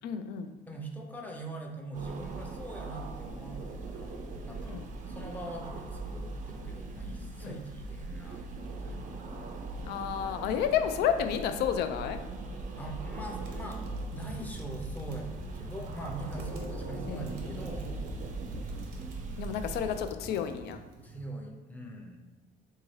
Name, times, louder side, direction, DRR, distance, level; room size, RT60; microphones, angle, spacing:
voice 1, 0.0-0.5 4.7-4.8 7.4-7.6 9.9-12.2 16.5-17.6 19.4-20.8, left 8 dB, 75° left, 8 dB, 0.4 m, -31 dB
voice 2, 0.7-4.2 4.4-8.4 8.7-9.2 12.8-13.8 14.1-17.9 19.3-19.5 21.0-22.2, right 2 dB, 10° left, 1 dB, 0.6 m, -42 dB
sound 1, 1.9-20.0, right 3 dB, 50° right, 0.5 m, -40 dB
sound 2, 13.2-21.2, right 2 dB, 85° right, 0.7 m, -48 dB
3.5 x 2.7 x 3.2 m, 1.3 s
cardioid pair, 110°, 17 cm